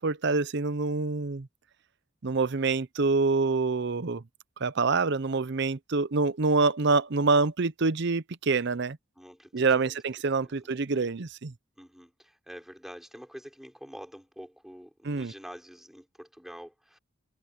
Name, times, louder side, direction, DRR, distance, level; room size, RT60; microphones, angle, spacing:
voice 1, 0.0-1.5 2.2-4.2 4.6-9.0 9.5-11.5 15.0-15.3, right 4 dB, 60° right, 0.7 m, -26 dB
voice 2, 9.2-10.0 10.4-10.7 11.8-17.0, equal, ahead, 6.3 m, -47 dB
head